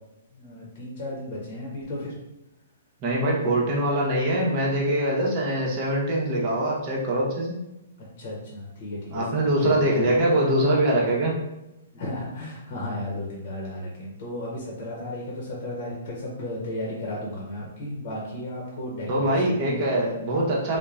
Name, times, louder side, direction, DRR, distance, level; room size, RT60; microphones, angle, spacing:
voice 1, 0.3-2.2 8.2-9.2 9.6-10.2 11.9-19.8, left 1 dB, 45° left, -4 dB, 0.8 m, -34 dB
voice 2, 3.0-7.6 9.1-11.3 19.1-20.8, right 1 dB, 35° right, -4 dB, 0.9 m, -23 dB
3.0 x 2.1 x 2.4 m, 0.93 s
hypercardioid pair, 130°, 0 cm